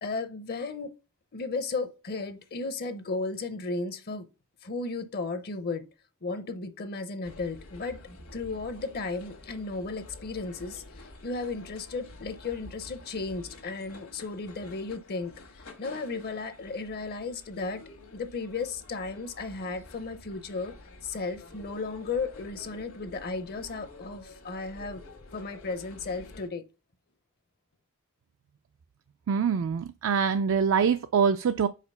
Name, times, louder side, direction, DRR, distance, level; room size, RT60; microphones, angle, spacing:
voice 1, 0.0-0.9 1.3-4.3 4.6-5.9 6.2-8.0 8.3-10.8 11.2-15.3 15.8-17.8 18.1-20.7 21.0-25.0 25.3-26.6, left 3 dB, 50° left, 0.7 m, -34 dB
sound 1, 7.2-26.5, left 2 dB, 75° left, 1.4 m, -49 dB
voice 2, 29.3-31.7, right 6 dB, 65° right, 0.4 m, -24 dB
5.0 x 4.4 x 5.4 m
head